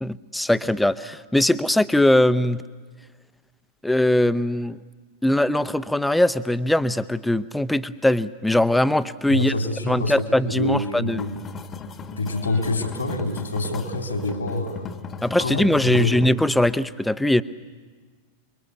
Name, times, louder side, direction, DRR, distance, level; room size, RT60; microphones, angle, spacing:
voice 1, 0.0-2.6 3.8-4.8 5.2-9.5 9.8-11.2 15.2-17.4, left 1 dB, 5° left, 14 dB, 0.8 m, -21 dB
voice 2, 9.3-11.3 12.2-14.9 15.4-16.2, left 2 dB, 80° left, 5 dB, 3.4 m, -26 dB
sound 1, 11.1-16.3, left 5 dB, 25° left, 1.4 m, -37 dB
28.0 x 22.0 x 8.4 m, 1.4 s
figure-of-eight pair, 90°, 0 cm